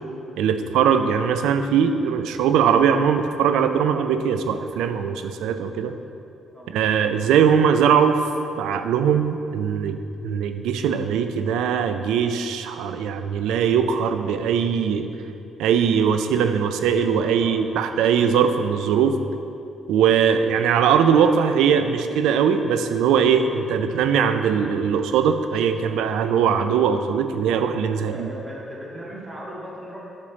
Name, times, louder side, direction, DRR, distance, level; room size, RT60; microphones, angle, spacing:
voice 1, 0.4-5.9 6.7-8.2 8.6-15.1 15.6-19.2 19.9-28.3, right 7 dB, 90° right, 9 dB, 0.4 m, -20 dB
voice 2, 17.2-17.6 28.1-30.0, equal, 15° right, -5 dB, 1.9 m, -37 dB
8.8 x 6.3 x 4.0 m, 2.8 s
cardioid pair, 90°, 0 cm